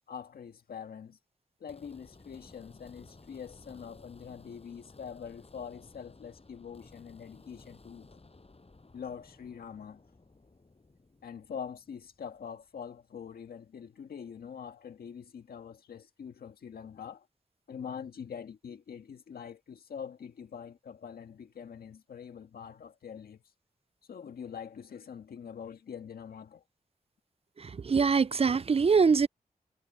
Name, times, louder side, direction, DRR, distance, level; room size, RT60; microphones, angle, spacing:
voice 1, 0.1-1.2 1.6-8.1 8.9-10.0 11.2-17.3 17.7-23.4 24.1-26.6, left 7 dB, 90° left, 1.7 m, -44 dB
sound 1, 1.7-13.0, left 3 dB, 40° left, 7.1 m, -56 dB
voice 2, 27.6-29.3, right 5 dB, 40° right, 0.5 m, -24 dB
cardioid pair, 45°, 15 cm